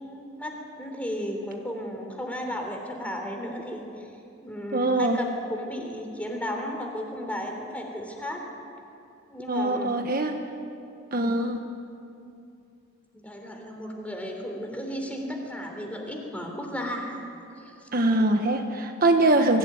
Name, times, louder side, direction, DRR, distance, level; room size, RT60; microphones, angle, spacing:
voice 1, 0.0-4.1 4.4-8.4 9.3-9.9 13.1-17.2 17.6-17.9, equal, 5° left, 2 dB, 3.3 m, -34 dB
voice 2, 4.7-5.2 9.5-10.4 11.1-11.6 17.9-19.6, right 2 dB, 45° right, 5 dB, 1.2 m, -23 dB
23.0 x 16.0 x 9.6 m, 2.6 s
head